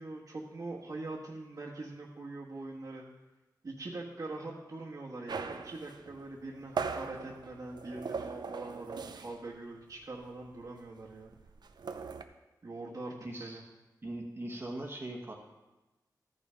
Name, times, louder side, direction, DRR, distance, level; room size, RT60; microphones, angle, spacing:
voice 1, 0.0-3.0 3.6-11.3 12.6-13.1 13.4-13.6, right 2 dB, 55° right, -6 dB, 1.4 m, -43 dB
sound 1, 5.3-9.5 9.8-10.0 10.3-12.2, right 5 dB, 75° right, 0.6 m, -40 dB
voice 2, 13.2-13.6 14.0-15.3, right 1 dB, 30° right, -1 dB, 1.3 m, -40 dB
13.0 x 5.6 x 5.1 m, 1.1 s
wide cardioid pair, 80°, 7 cm